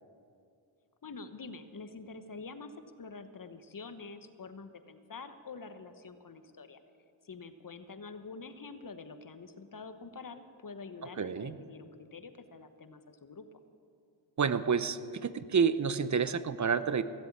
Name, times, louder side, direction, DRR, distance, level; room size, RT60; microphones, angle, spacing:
voice 1, 1.0-6.8 7.2-13.5, left 4 dB, 40° left, 10 dB, 1.1 m, -46 dB
voice 2, 11.2-11.5 14.4-17.0, right 6 dB, 35° right, 14 dB, 0.7 m, -29 dB
16.0 x 7.7 x 8.5 m, 2.4 s
supercardioid pair, 40°, 48 cm